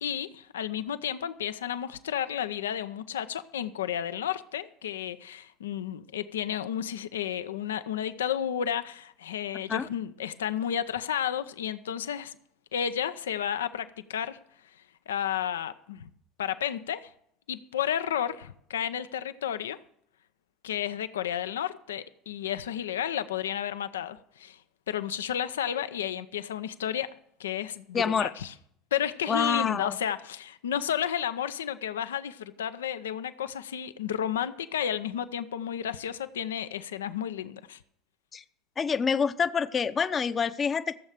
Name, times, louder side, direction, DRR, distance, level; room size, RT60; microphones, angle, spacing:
voice 1, 0.0-12.4 12.7-14.4 15.1-16.1 16.4-17.1 17.5-19.8 20.6-24.6 24.9-28.5 28.9-37.8, left 9 dB, 80° left, 0.6 m, -32 dB
voice 2, 27.9-28.3 29.3-30.0 38.3-38.4 38.8-40.9, left 6 dB, 35° left, 0.7 m, -27 dB
14.5 x 7.3 x 6.6 m
hypercardioid pair, 70°, 0 cm